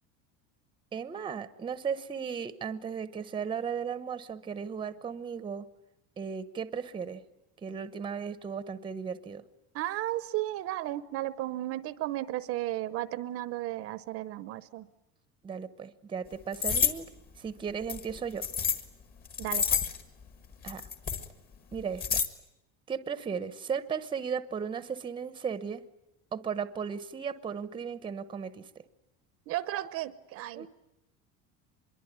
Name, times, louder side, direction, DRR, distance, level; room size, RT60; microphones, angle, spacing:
voice 1, 0.9-5.7 6.2-7.2 7.6-9.4 15.4-17.1 17.4-18.5 20.6-20.8 21.7-22.2 22.9-25.8 26.3-28.6 30.5-30.7, right 6 dB, 15° right, 14 dB, 0.9 m, -36 dB
voice 2, 9.7-14.9 19.4-19.8 29.5-30.7, right 15 dB, 45° right, 16 dB, 0.9 m, -34 dB
sound 1, 16.5-16.9 17.9-18.8 19.2-20.0 20.7-21.3 21.7-22.3, left 6 dB, 30° left, 1.9 m, -28 dB
25.0 x 22.5 x 9.5 m, 0.92 s
cardioid pair, 170°, 32 cm